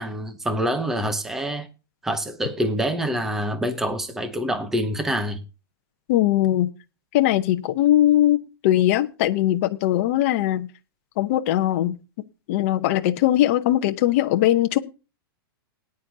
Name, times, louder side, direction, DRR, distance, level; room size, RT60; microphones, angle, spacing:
voice 1, 0.0-1.7 2.0-5.4, equal, 5° right, 0.8 m, -26 dB
voice 2, 6.1-6.7 7.1-10.7 11.2-12.0 12.5-14.8, left 13 dB, 35° left, 0.8 m, -20 dB
19.0 x 9.6 x 2.8 m
supercardioid pair, 175°, 12 cm